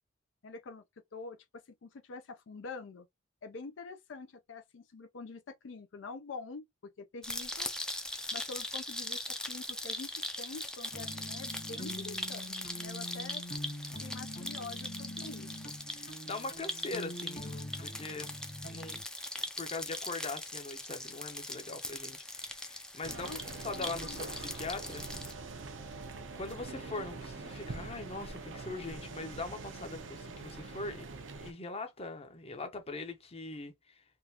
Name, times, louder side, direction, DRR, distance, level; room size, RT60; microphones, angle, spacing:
voice 1, 0.4-3.1 3.4-7.7 8.3-9.2 9.5-13.5 14.0-15.7 23.1-24.5, left 4 dB, 75° left, 0.5 m, -46 dB
sound 1, 7.2-25.3, left 1 dB, 5° left, 0.4 m, -40 dB
sound 2, 10.9-19.0, equal, 50° left, 1.6 m, -44 dB
voice 2, 15.9-18.3 18.7-19.0 19.6-23.3 23.6-25.0 26.3-31.1 31.4-34.0, left 3 dB, 30° left, 0.8 m, -41 dB
sound 3, 23.0-31.5, right 3 dB, 80° right, 0.7 m, -44 dB
3.6 x 2.4 x 2.8 m
head